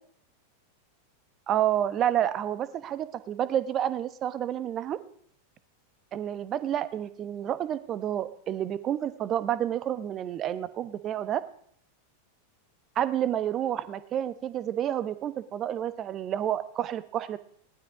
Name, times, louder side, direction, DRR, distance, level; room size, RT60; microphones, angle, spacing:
voice 1, 1.5-5.0 6.1-11.4 12.9-17.4, right 10 dB, 30° right, 13 dB, 1.1 m, -29 dB
18.5 x 12.0 x 4.9 m, 0.66 s
figure-of-eight pair, 90°, 0 cm